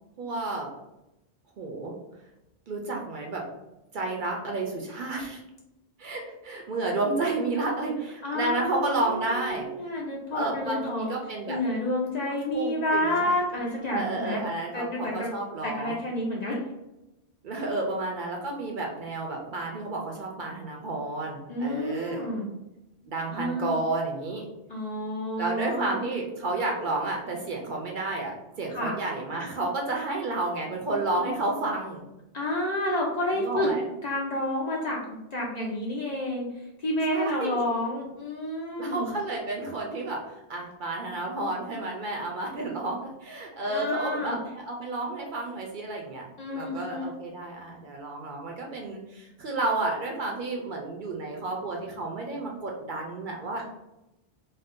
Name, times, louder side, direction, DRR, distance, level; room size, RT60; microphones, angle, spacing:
voice 1, 0.2-0.7 1.6-2.0 2.7-3.5 3.9-5.4 6.0-9.7 10.3-11.6 12.3-13.3 13.9-16.0 17.4-22.3 23.0-24.4 25.4-32.0 33.3-33.9 37.1-37.6 38.8-40.2 40.5-46.2 46.5-53.6, right 2 dB, 55° right, 0 dB, 0.6 m, -31 dB
voice 2, 8.2-11.1 11.5-14.4 14.7-15.3 15.6-16.6 21.5-22.5 23.3-23.8 24.7-26.0 28.7-28.9 32.3-33.7 34.0-35.0 35.3-36.5 36.8-39.1 43.7-44.4 46.4-47.1, left 1 dB, 50° left, -2 dB, 0.5 m, -29 dB
2.6 x 2.2 x 3.5 m, 0.94 s
omnidirectional pair, 1.1 m